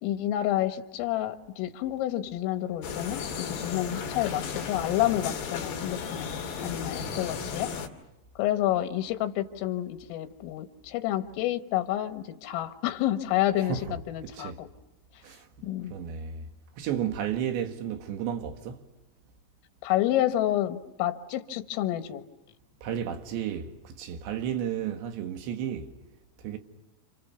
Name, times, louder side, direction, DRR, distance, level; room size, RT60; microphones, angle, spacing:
voice 1, 0.0-6.3 6.6-7.7 8.4-14.7 15.6-15.9 19.8-22.2, left 13 dB, 80° left, 4.0 m, -29 dB
sound 1, 2.8-7.9, left 6 dB, 60° left, 4.4 m, -35 dB
voice 2, 7.0-7.4 13.6-14.0 14.2-14.6 15.2-15.5 15.9-16.5 16.8-18.8 22.8-25.9 26.4-26.6, right 9 dB, 65° right, 3.8 m, -33 dB
29.5 x 28.5 x 7.0 m
omnidirectional pair, 5.9 m